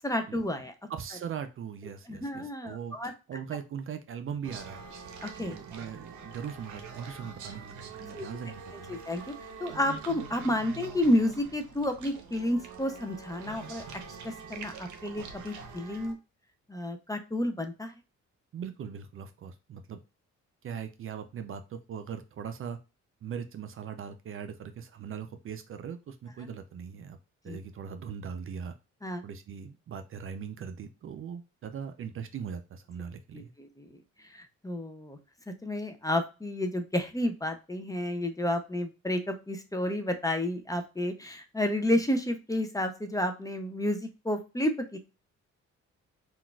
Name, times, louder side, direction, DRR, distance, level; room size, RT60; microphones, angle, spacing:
voice 1, 0.0-0.7 2.1-3.1 5.2-5.6 8.1-8.3 8.7-9.3 9.6-13.8 14.2-16.2 16.7-17.9 27.5-27.6 29.0-29.2 33.3-35.2 35.5-45.0, left 1 dB, 10° left, 7 dB, 0.5 m, -31 dB
voice 2, 0.9-4.8 5.4-9.0 18.5-20.0 20.6-22.8 23.2-27.2 27.4-28.7 29.2-33.5, right 7 dB, 45° right, 9 dB, 0.4 m, -40 dB
sound 1, 4.4-16.1, right 5 dB, 75° right, 0.7 m, -45 dB
3.8 x 2.4 x 2.3 m, 0.28 s
cardioid pair, 90°, 30 cm